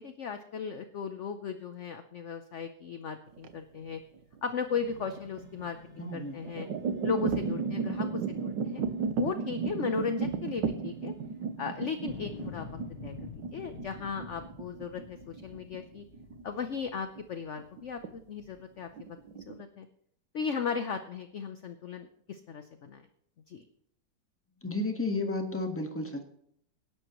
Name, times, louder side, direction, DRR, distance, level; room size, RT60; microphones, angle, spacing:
voice 1, 0.0-4.0 4.4-6.7 7.0-8.8 9.2-11.1 11.6-16.0 16.4-19.9 20.3-23.0 23.5-23.7, left 6 dB, 55° left, 8 dB, 0.9 m, -36 dB
sound 1, 3.3-4.4 5.0-5.4 6.2-17.2 17.6-18.1 18.4-18.5 19.0-19.6, right 5 dB, 80° right, 1.6 m, -34 dB
sound 2, 4.7-13.3, right 1 dB, 40° right, 5.7 m, -55 dB
voice 2, 6.0-6.4 24.6-26.2, left 2 dB, 10° left, 4 dB, 1.4 m, -32 dB
sound 3, 12.1-17.3 17.8-18.6, left 7 dB, 90° left, 1.7 m, -47 dB
24.5 x 11.0 x 3.1 m, 0.70 s
omnidirectional pair, 1.9 m